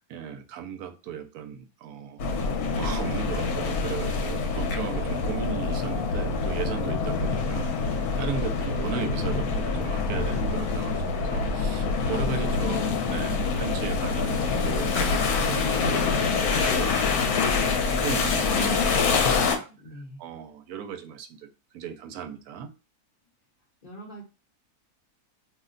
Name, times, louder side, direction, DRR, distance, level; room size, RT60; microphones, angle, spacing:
voice 1, 0.1-2.2 2.7-19.7 20.2-21.5 21.7-22.7, right 8 dB, 80° right, 1.1 m, -36 dB
sound 1, 2.2-19.6, left 4 dB, 80° left, 1.1 m, -26 dB
voice 2, 11.8-12.3 12.5-12.8 19.7-20.2 23.8-24.2, right 1 dB, 40° left, 0.9 m, -43 dB
2.7 x 2.1 x 3.6 m
omnidirectional pair, 1.6 m